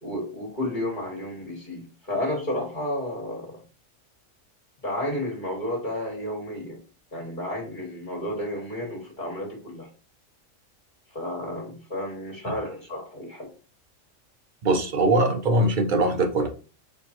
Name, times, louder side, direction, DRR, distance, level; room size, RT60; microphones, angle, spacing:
voice 1, 0.0-3.6 4.8-6.8 7.1-9.9 11.1-13.5, left 1 dB, 40° left, 1.3 m, -32 dB
voice 2, 14.6-16.5, right 2 dB, 45° right, 0.9 m, -21 dB
4.6 x 3.7 x 2.8 m
omnidirectional pair, 1.3 m